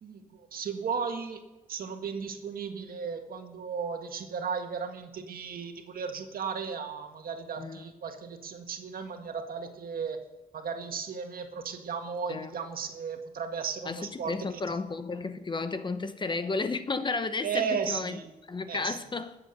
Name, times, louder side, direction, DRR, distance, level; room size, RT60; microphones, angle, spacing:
voice 1, 0.0-1.4 1.7-10.2 10.5-14.8 17.4-18.3 18.7-19.0, right 6 dB, 80° right, 1.8 m, -35 dB
voice 2, 13.9-18.2 18.5-19.4, left 3 dB, 30° left, 0.9 m, -33 dB
21.0 x 7.9 x 6.7 m
wide cardioid pair, 130°, 15 cm